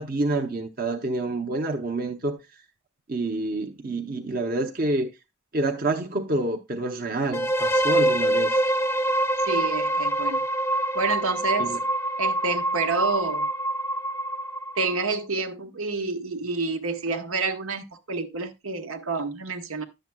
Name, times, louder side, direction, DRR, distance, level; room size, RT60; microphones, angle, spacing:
voice 1, 0.0-2.4 3.1-5.1 5.5-8.6 11.6-11.8, right 2 dB, 45° right, 0.8 m, -28 dB
sound 1, 7.3-15.1, right 1 dB, 10° left, 0.4 m, -25 dB
voice 2, 9.4-10.4 10.9-11.8 12.2-13.5 14.7-19.9, right 3 dB, 90° right, 1.3 m, -28 dB
11.0 x 7.6 x 2.3 m
head